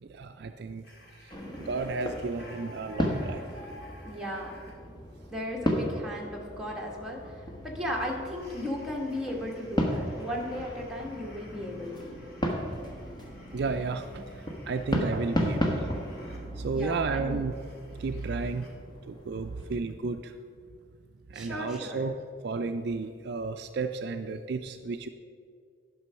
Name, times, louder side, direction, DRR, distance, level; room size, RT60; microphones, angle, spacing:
voice 1, 0.0-3.4 13.5-15.9 16.5-17.5 18.0-18.7 19.0-20.3 21.3-22.1 22.4-25.1, right 4 dB, 55° right, 7 dB, 0.4 m, -33 dB
sound 1, 0.8-4.8 8.0-16.4 16.7-16.8 17.3-18.7, left 1 dB, 50° left, 1.8 m, -54 dB
sound 2, 1.3-19.8, equal, 20° left, 1.1 m, -35 dB
voice 2, 4.0-4.6 5.3-12.1 16.7-17.4 21.3-22.0, left 1 dB, 5° right, -3 dB, 1.3 m, -36 dB
11.0 x 6.1 x 5.6 m, 2.2 s
head